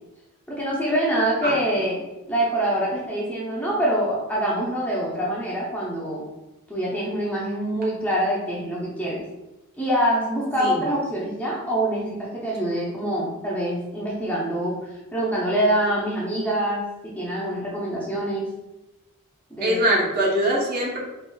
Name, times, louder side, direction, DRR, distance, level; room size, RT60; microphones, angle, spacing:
voice 1, 0.5-2.0 2.3-6.2 6.7-9.2 9.8-18.5 19.5-19.8, right 1 dB, 5° left, -6 dB, 0.6 m, -25 dB
voice 2, 19.6-21.0, right 1 dB, 45° right, -4 dB, 0.9 m, -22 dB
4.4 x 2.6 x 2.3 m, 1.0 s
head